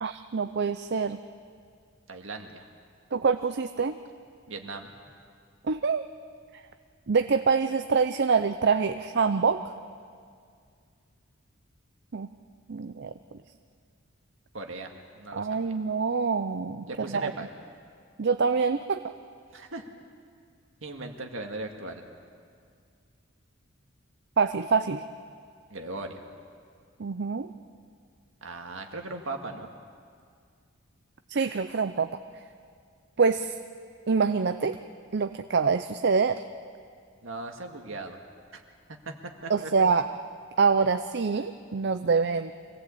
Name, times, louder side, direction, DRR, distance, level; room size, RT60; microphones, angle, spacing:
voice 1, 0.0-1.2 3.1-3.9 5.7-6.0 7.1-9.6 12.1-12.3 12.7-13.1 15.3-16.8 17.1-17.3 18.2-19.0 24.4-25.0 27.0-27.5 31.3-32.1 33.2-33.5 34.1-34.8 35.1-36.4 39.5-40.0 40.6-42.5, right 5 dB, 55° right, 9 dB, 0.6 m, -25 dB
voice 2, 2.1-2.6 4.5-4.9 14.5-15.7 16.9-17.5 19.5-19.9 20.8-22.0 25.7-26.2 28.4-29.7 37.2-38.2 38.5-38.6 38.9-39.1 39.4-39.7, right 2 dB, 70° right, 3 dB, 2.0 m, -38 dB
24.5 x 17.5 x 8.5 m, 2.2 s
head